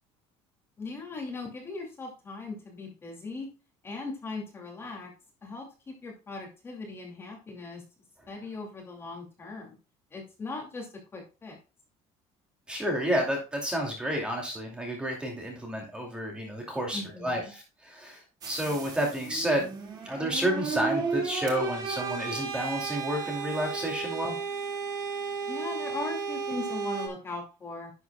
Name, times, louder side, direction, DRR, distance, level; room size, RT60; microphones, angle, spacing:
voice 1, 0.8-3.5 3.8-5.1 5.4-7.8 8.3-9.8 10.1-11.6 16.9-17.5 25.5-27.9, left 3 dB, 20° left, 0 dB, 2.4 m, -39 dB
voice 2, 12.7-19.8 20.0-24.4, equal, 10° right, 0 dB, 2.4 m, -30 dB
sound 1, 18.4-27.1, right 5 dB, 30° right, 2.0 m, -34 dB
11.0 x 7.8 x 2.3 m, 0.32 s
cardioid pair, 170°, 12 cm